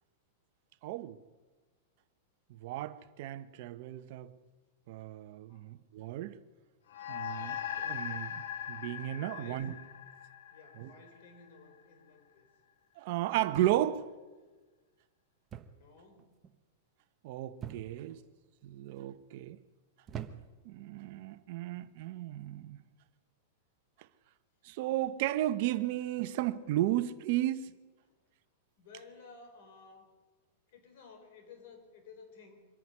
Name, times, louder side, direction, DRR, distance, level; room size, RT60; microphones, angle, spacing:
voice 1, 0.8-1.2 2.5-4.3 4.9-6.4 7.1-9.7 10.8-10.9 13.0-14.1 17.2-18.2 18.6-19.6 20.6-22.8 24.6-27.7, right 14 dB, 50° right, 1.1 m, -34 dB
sound 1, 6.9-11.6, left 9 dB, 90° left, 1.6 m, -40 dB
voice 2, 9.2-9.9 10.5-12.5 15.7-16.3 17.8-18.3 28.0-28.1 28.8-30.1 30.7-32.6, left 4 dB, 55° left, 5.0 m, -55 dB
sound 2, 13.5-14.1 15.5-15.9 16.2-16.6 17.6-18.2 18.9-19.3 20.1-20.7 21.7-21.9, right 9 dB, 20° right, 1.1 m, -45 dB
25.0 x 10.5 x 9.8 m
supercardioid pair, 155°, 0 cm